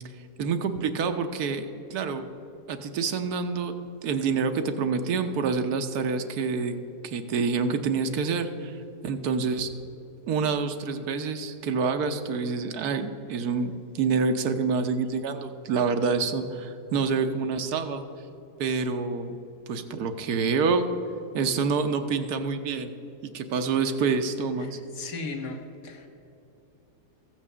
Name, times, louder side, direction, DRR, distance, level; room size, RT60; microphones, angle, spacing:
voice 1, 0.4-2.3 2.7-3.8 4.0-6.8 7.0-8.7 9.0-9.7 10.3-18.0 18.6-19.4 19.7-20.9 21.3-22.9 23.2-24.8, right 5 dB, 70° right, 8 dB, 1.2 m, -27 dB
voice 2, 24.6-26.1, left 3 dB, 60° left, 3 dB, 1.5 m, -37 dB
14.5 x 6.1 x 6.7 m, 2.9 s
omnidirectional pair, 1.7 m